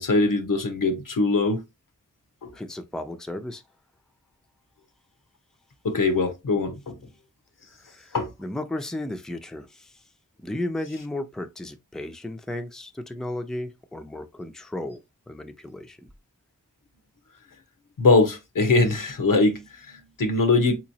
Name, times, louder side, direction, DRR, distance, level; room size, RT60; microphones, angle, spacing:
voice 1, 0.0-1.6 2.4-2.5 5.8-7.0 8.1-8.3 18.0-20.8, left 3 dB, 85° left, 0.8 m, -22 dB
voice 2, 2.5-3.6 7.8-10.0 10.4-15.0 15.3-16.1, left 1 dB, ahead, 0.4 m, -34 dB
3.8 x 2.9 x 2.7 m
wide cardioid pair, 55°, 32 cm